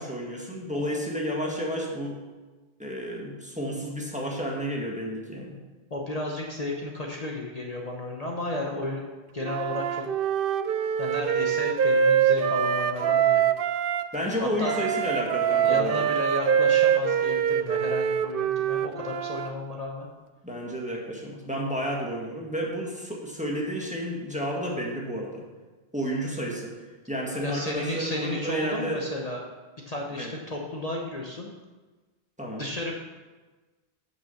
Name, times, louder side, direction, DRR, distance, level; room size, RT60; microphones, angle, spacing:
voice 1, 0.0-2.2 2.8-5.6 14.1-16.1 20.4-25.4 25.9-26.7 27.1-29.0 30.1-30.3 32.4-32.7, equal, 5° right, -2 dB, 1.7 m, -31 dB
voice 2, 5.9-9.1 9.3-10.1 11.0-13.4 14.4-14.8 15.6-20.1 27.4-29.4 29.9-31.5 32.6-32.9, left 2 dB, 40° left, 0 dB, 1.1 m, -33 dB
Wind instrument woodwind instrument, 9.4-14.1 14.6-19.5, right 8 dB, 65° right, 0.7 m, -24 dB
8.5 x 6.3 x 7.1 m, 1.3 s
omnidirectional pair, 1.0 m